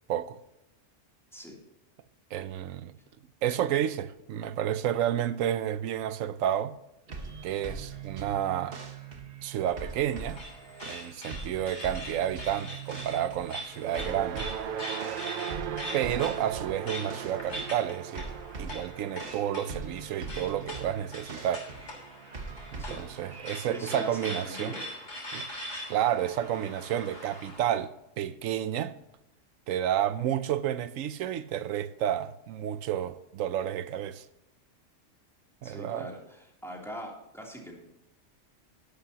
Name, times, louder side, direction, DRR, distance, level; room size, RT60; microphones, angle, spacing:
voice 1, 2.3-2.9 3.4-6.7 7.4-8.8 9.4-10.4 10.9-14.5 15.9-18.3 18.6-21.6 22.7-24.7 25.3-25.5 25.9-27.9 28.2-28.9 29.7-34.3 35.6-36.1, right 10 dB, 90° right, 1.0 m, -30 dB
sound 1, 7.1-23.8, right 4 dB, 45° right, 1.5 m, -42 dB
sound 2, 9.6-27.8, left 1 dB, 60° left, 3.6 m, -42 dB
sound 3, 13.7-22.1, right 9 dB, 60° right, 0.5 m, -39 dB
voice 2, 23.3-24.8 35.6-38.0, equal, ahead, 2.9 m, -42 dB
11.5 x 11.5 x 2.9 m
omnidirectional pair, 1.3 m